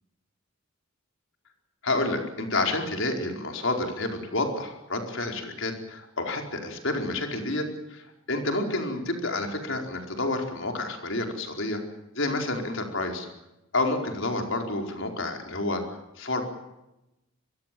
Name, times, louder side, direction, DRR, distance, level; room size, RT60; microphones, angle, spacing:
voice 1, 1.8-11.8 12.1-13.3 13.7-15.8 16.2-16.4, left 2 dB, 65° left, 3 dB, 4.8 m, -29 dB
25.5 x 22.5 x 7.8 m, 0.94 s
head